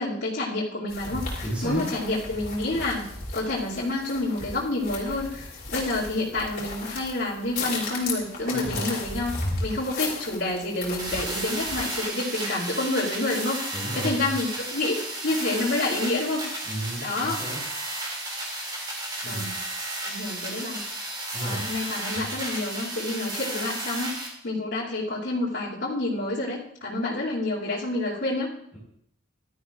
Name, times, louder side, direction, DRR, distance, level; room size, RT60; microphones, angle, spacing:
voice 1, 0.0-3.1 3.3-13.6 13.9-16.4 17.0-17.4 19.2-19.7 20.0-20.8 21.4-28.5, left 2 dB, 70° left, -9 dB, 2.7 m, -29 dB
sound 1, 0.9-12.0, left 3 dB, 45° left, 3.3 m, -35 dB
voice 2, 1.4-1.9 8.5-8.9 13.7-14.3 16.6-17.6 19.2-19.5 21.3-21.7 22.1-22.2, right 1 dB, 5° right, -4 dB, 5.1 m, -33 dB
sound 2, 11.0-24.3, right 1 dB, 20° right, 2.6 m, -33 dB
16.0 x 12.0 x 2.5 m, 0.69 s
head